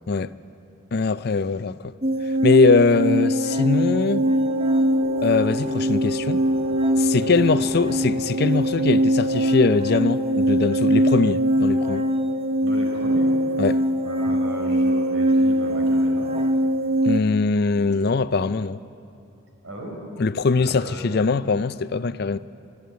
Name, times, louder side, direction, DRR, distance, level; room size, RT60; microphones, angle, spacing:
voice 1, 0.9-1.9 2.4-4.3 5.2-6.4 7.0-12.0 13.6-13.8 17.0-18.8 20.2-22.4, left 4 dB, 50° left, 0.5 m, -21 dB
sound 1, 2.0-17.2, equal, 30° right, 0.9 m, -22 dB
sound 2, 2.5-12.8, right 2 dB, 45° right, 3.7 m, -37 dB
voice 2, 7.2-7.7 12.6-13.3 14.0-16.3 19.6-20.0 20.5-21.0, right 1 dB, 75° right, 5.3 m, -36 dB
23.0 x 13.0 x 9.4 m
head